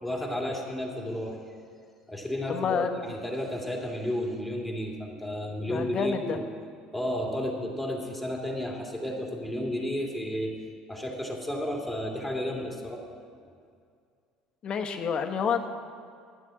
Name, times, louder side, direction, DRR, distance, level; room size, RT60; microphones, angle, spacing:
voice 1, 0.0-1.4 2.1-6.4 6.9-10.6 10.9-13.0, equal, ahead, -1 dB, 2.5 m, -32 dB
voice 2, 2.5-3.1 5.7-6.4 14.6-15.7, left 6 dB, 45° left, 6 dB, 1.1 m, -29 dB
11.5 x 7.8 x 7.6 m, 2.3 s
hypercardioid pair, 80°, 2 cm